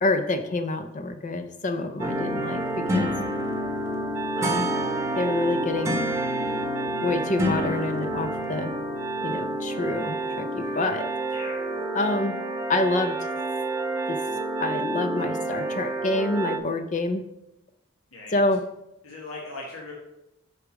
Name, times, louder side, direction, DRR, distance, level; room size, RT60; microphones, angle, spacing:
voice 1, 0.0-2.6 2.9-3.1 4.4-4.7 5.2-6.0 7.0-8.7 9.2-11.1 11.9-12.3 12.7-13.2 14.1-14.2 14.6-17.2 18.3-18.6, left 2 dB, 35° left, 8 dB, 0.5 m, -27 dB
sound 1, 2.0-16.6, right 1 dB, 15° right, 0.9 m, -28 dB
voice 2, 18.1-18.5 19.0-19.9, left 2 dB, 80° left, -3 dB, 1.6 m, -39 dB
6.5 x 4.7 x 6.2 m, 0.87 s
head